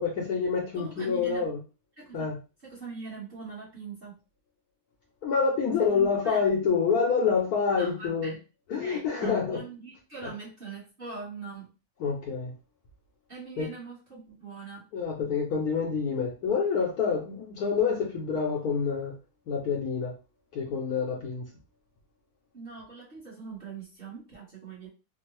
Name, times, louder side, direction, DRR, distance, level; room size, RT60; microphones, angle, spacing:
voice 1, 0.0-1.6 2.1-2.4 5.2-8.3 8.7-9.6 12.0-12.5 13.6-13.7 14.9-19.1 19.5-20.1 20.5-21.5, left 5 dB, 70° left, 0 dB, 0.9 m, -27 dB
voice 2, 0.8-1.4 2.0-2.3 2.6-4.2 5.9-6.4 7.7-8.4 8.8-11.7 13.3-14.9 22.5-24.9, right 4 dB, 35° right, -7 dB, 1.0 m, -42 dB
3.6 x 2.0 x 2.9 m, 0.31 s
omnidirectional pair, 2.1 m